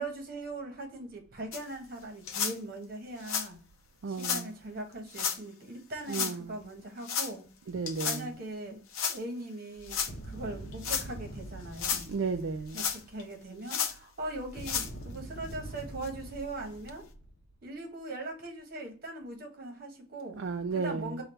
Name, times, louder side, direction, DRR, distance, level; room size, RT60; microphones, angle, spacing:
voice 1, 0.0-3.6 4.1-7.4 8.0-8.8 9.1-12.1 12.7-17.1 17.6-20.4 20.8-21.2, right 2 dB, 45° right, 1.1 m, -40 dB
sound 1, 1.5-1.6 2.3-2.5 3.2-3.5 4.2-4.4 5.1-5.4 6.1-6.3 7.0-7.3 7.9-8.2 8.9-9.2 9.9-10.1 10.7-11.1 11.6-12.1 12.7-13.2 13.7-13.9 14.5-14.9 15.5-15.6 16.0-16.1 16.9-17.0, left 7 dB, 80° left, 0.6 m, -32 dB
voice 2, 4.0-4.5 6.1-6.5 7.7-8.3 12.1-12.8 20.4-21.2, right 4 dB, 60° right, 0.4 m, -33 dB
sound 2, 9.8-13.0 14.2-17.5, right 1 dB, 45° left, 0.8 m, -44 dB
5.2 x 2.3 x 4.3 m
head